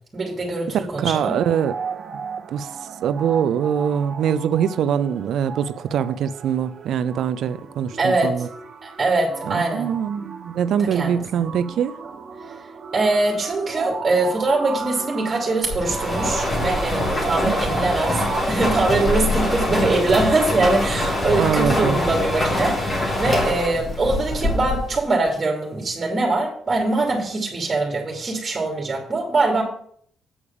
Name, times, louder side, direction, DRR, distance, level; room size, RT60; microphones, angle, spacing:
voice 1, 0.1-1.4 8.0-8.5 8.8-10.0 10.8-11.2 12.5-12.6 12.9-29.6, right 2 dB, 30° right, 2.8 m, -23 dB
sound 1, 0.9-18.5, right 5 dB, 50° right, 1.1 m, -35 dB
voice 2, 1.0-1.7 2.5-8.5 9.5-11.9 17.4-17.5 21.4-22.0, right 8 dB, 75° right, 0.4 m, -23 dB
sound 2, 15.7-25.0, left 1 dB, 25° left, 2.8 m, -23 dB
8.6 x 4.9 x 6.8 m
cardioid pair, 90°, 0 cm